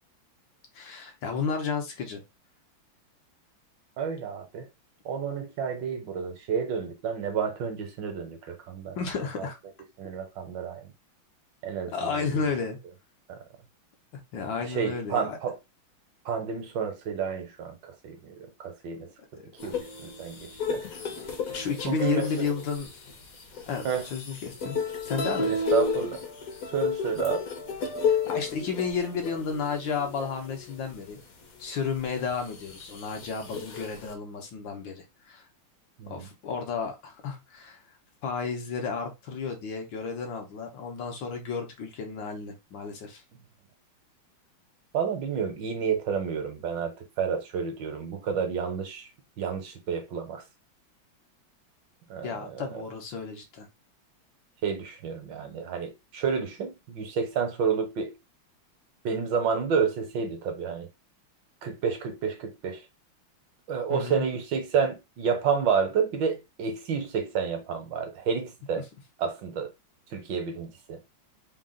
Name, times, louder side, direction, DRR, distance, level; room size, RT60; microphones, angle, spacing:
voice 1, 0.7-2.2 8.9-9.6 11.9-12.8 14.1-15.4 19.4-19.7 21.4-22.9 23.7-25.5 28.0-31.2 31.6-35.4 36.1-37.8 38.2-43.2 52.2-53.7 63.9-64.3, left 5 dB, 70° left, 1.6 m, -32 dB
voice 2, 4.0-4.7 5.0-9.0 9.4-9.5 10.0-10.8 11.6-12.5 13.3-13.4 14.7-15.6 16.2-20.8 21.9-22.5 23.8-24.1 25.5-26.2 26.7-27.4 36.0-36.3 44.9-49.1 49.4-50.4 52.1-52.8 54.6-58.1 59.0-60.9 61.6-62.8 63.7-68.8 69.2-69.7 70.1-71.0, right 6 dB, 65° right, 1.4 m, -30 dB
sound 1, 19.6-30.9 31.4-31.5 31.9-34.1, left 5 dB, 55° left, 1.2 m, -32 dB
3.9 x 2.4 x 3.7 m
omnidirectional pair, 2.2 m